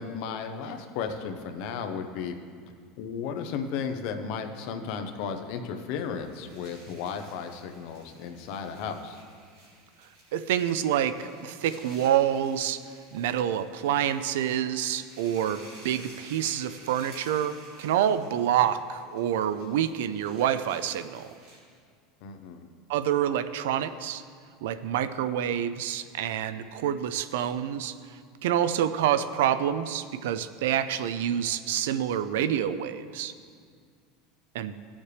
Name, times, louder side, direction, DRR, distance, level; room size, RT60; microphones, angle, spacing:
voice 1, 0.0-2.4 3.0-9.2 22.2-22.7, left 6 dB, 50° left, 6 dB, 0.8 m, -34 dB
sound 1, 6.0-21.8, right 2 dB, 55° right, 3.1 m, -53 dB
voice 2, 10.3-12.8 13.1-21.3 22.9-24.2 24.6-27.9 28.4-33.3 34.5-34.7, right 10 dB, 80° right, 13 dB, 0.4 m, -27 dB
16.5 x 7.2 x 3.3 m, 2.1 s
supercardioid pair, 180°, 0 cm